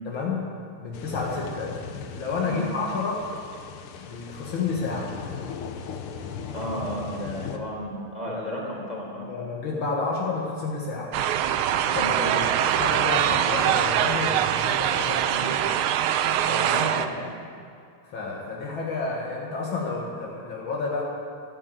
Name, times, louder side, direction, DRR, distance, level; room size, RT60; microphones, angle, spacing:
voice 1, 0.1-0.4 0.8-3.3 4.0-5.1 7.4-7.6 9.3-11.1 11.9-15.5 16.4-16.7 18.0-21.0, left 4 dB, 65° left, -3 dB, 2.2 m, -30 dB
sound 1, 0.9-7.6, left 6 dB, 85° left, 1.8 m, -38 dB
voice 2, 2.4-2.7 6.5-9.3 11.9-12.2 15.3-15.6 16.6-17.3, equal, 20° left, -3 dB, 4.1 m, -33 dB
sound 2, 11.1-17.1, right 10 dB, 85° right, 1.5 m, -23 dB
12.5 x 10.5 x 9.0 m, 2.3 s
omnidirectional pair, 2.3 m